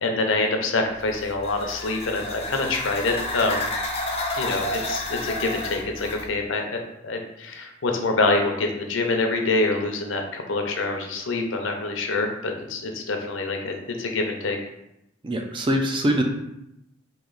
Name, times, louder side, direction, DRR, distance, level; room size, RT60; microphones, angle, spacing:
voice 1, 0.0-3.7 4.4-14.6, left 3 dB, 80° left, 3 dB, 0.6 m, -26 dB
sound 1, 1.0-6.3, left 2 dB, 30° left, 0.5 m, -30 dB
voice 2, 15.2-16.2, equal, 25° right, 3 dB, 0.4 m, -23 dB
3.1 x 2.8 x 3.9 m, 0.84 s
head